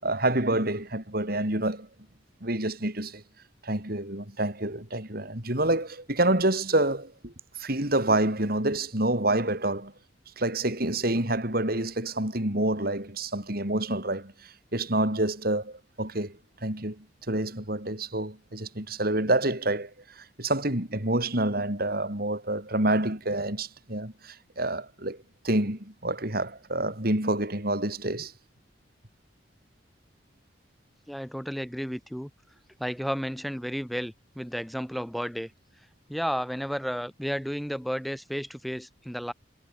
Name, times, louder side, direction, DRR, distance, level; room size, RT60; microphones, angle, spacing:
voice 1, 0.0-1.9 2.4-3.2 3.6-7.3 7.6-9.9 10.4-19.9 20.2-25.2 25.4-28.3, right 1 dB, 55° right, 5.9 m, -28 dB
voice 2, 31.1-32.3 32.8-35.5 36.1-39.3, equal, ahead, 4.0 m, -32 dB
head